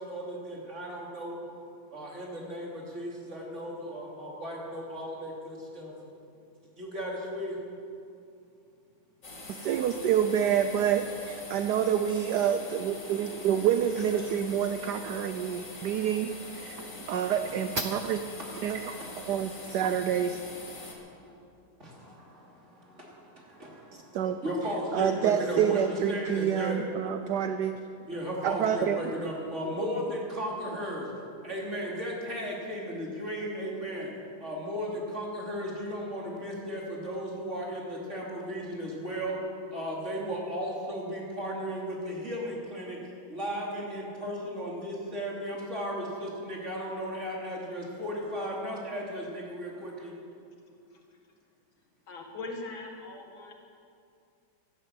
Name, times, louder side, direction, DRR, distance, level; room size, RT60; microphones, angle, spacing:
voice 1, 0.0-1.4 1.9-6.0 6.7-7.6 14.0-14.2 18.6-19.1 19.5-19.8 20.4-21.4 21.8-27.1 28.1-31.1 31.4-34.1 34.4-39.4 39.7-43.0 43.3-50.1, equal, 35° right, -3 dB, 3.2 m, -36 dB
sound 1, 9.2-20.9, left 2 dB, 40° left, 2.4 m, -44 dB
voice 2, 9.5-18.2 18.6-18.8 19.3-20.4 24.1-24.4 24.9-27.7 28.4-29.0, right 9 dB, 70° right, 9 dB, 1.0 m, -28 dB
voice 3, 52.1-53.5, left 3 dB, 70° left, 1 dB, 2.6 m, -40 dB
13.0 x 12.0 x 8.2 m, 2.5 s
omnidirectional pair, 2.3 m